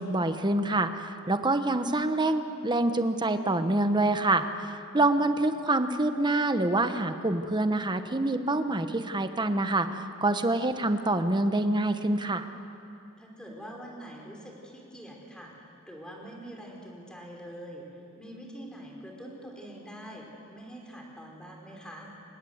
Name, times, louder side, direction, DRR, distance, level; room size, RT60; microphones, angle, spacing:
voice 1, 0.0-12.4, right 2 dB, 20° right, 9 dB, 1.1 m, -26 dB
voice 2, 5.1-5.5 13.2-17.8 18.2-22.1, equal, 5° left, -1 dB, 4.4 m, -44 dB
27.0 x 20.5 x 8.0 m, 2.6 s
head